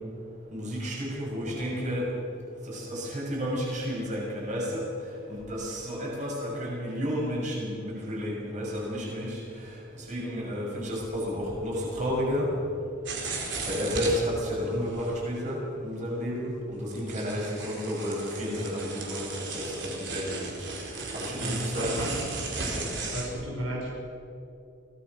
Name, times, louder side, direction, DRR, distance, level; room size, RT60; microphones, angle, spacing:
voice 1, 0.5-2.1 2.7-4.9 5.3-9.4 10.0-12.5 13.7-19.3 19.5-20.7 21.1-22.0 22.7-22.8, equal, 35° right, -4 dB, 6.9 m, -31 dB
sound 1, 13.1-14.2 14.9-15.1 15.4-15.5 15.7-15.8 16.9-23.3, right 3 dB, 60° right, 4.3 m, -35 dB
voice 2, 21.4-22.1 23.1-23.9, equal, 85° right, -3 dB, 5.8 m, -33 dB
24.5 x 18.0 x 6.2 m, 2.6 s
head